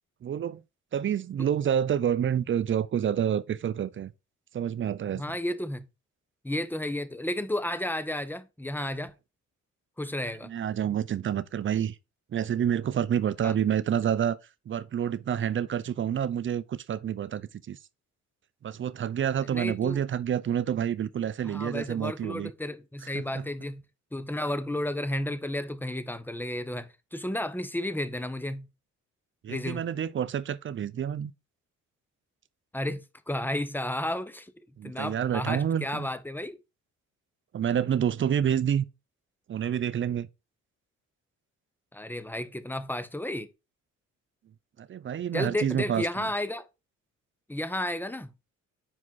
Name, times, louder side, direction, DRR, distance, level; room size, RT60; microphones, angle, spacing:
voice 1, 0.2-0.6 0.9-4.1 4.5-5.2 10.4-12.0 12.3-14.4 14.7-17.8 18.6-22.5 23.1-23.4 29.4-31.3 34.8-36.1 37.5-38.9 39.5-40.3 44.9-46.3, right 9 dB, 40° right, 0.5 m, -28 dB
voice 2, 5.1-5.9 6.4-9.1 10.0-10.5 13.4-13.5 19.5-20.0 21.4-23.8 24.1-28.7 29.5-29.8 32.7-34.5 34.8-36.6 41.9-43.5 45.3-46.7 47.5-48.3, left 1 dB, 5° left, 0.8 m, -32 dB
5.9 x 4.9 x 4.0 m
cardioid pair, 90°, 30 cm